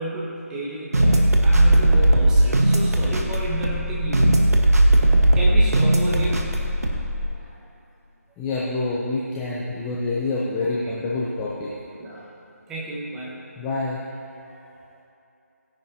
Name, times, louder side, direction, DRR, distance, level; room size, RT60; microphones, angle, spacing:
voice 1, 0.0-4.4 5.3-6.6 7.4-7.6 10.6-10.7 12.0-12.2 12.7-13.4, right 1 dB, 5° right, -6 dB, 1.2 m, -31 dB
sound 1, 0.9-7.3, right 1 dB, 65° right, 1.3 m, -18 dB
voice 2, 8.4-11.7 13.6-14.0 14.4-14.7, left 3 dB, 10° left, -6 dB, 0.6 m, -27 dB
16.0 x 10.5 x 2.9 m, 2.8 s
figure-of-eight pair, 155°, 9 cm